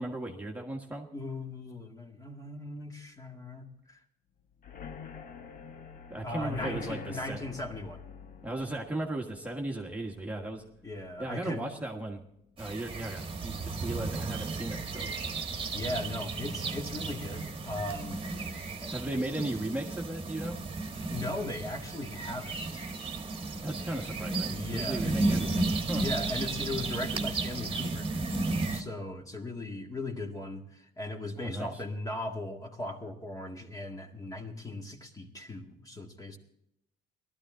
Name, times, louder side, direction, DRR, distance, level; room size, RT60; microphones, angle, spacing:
voice 1, 0.0-1.1 6.1-7.4 8.4-10.6 11.2-12.2 12.6-15.1 18.9-20.6 23.6-26.0 31.4-31.8, right 1 dB, 10° right, 0 dB, 1.5 m, -36 dB
voice 2, 1.1-4.0 6.2-8.0 10.8-11.7 15.7-18.3 18.8-18.9 19.4-19.5 21.1-22.8 24.5-25.3 25.9-28.2 28.7-36.4, left 2 dB, 20° left, 2 dB, 2.0 m, -38 dB
sound 1, 4.6-12.2 12.6-13.0 13.3-13.4 13.7-13.8, left 6 dB, 55° left, 1.2 m, -47 dB
sound 2, 12.6-28.8, right 3 dB, 30° right, 1.5 m, -34 dB
18.0 x 12.5 x 3.8 m, 0.75 s
cardioid pair, 110°, 17 cm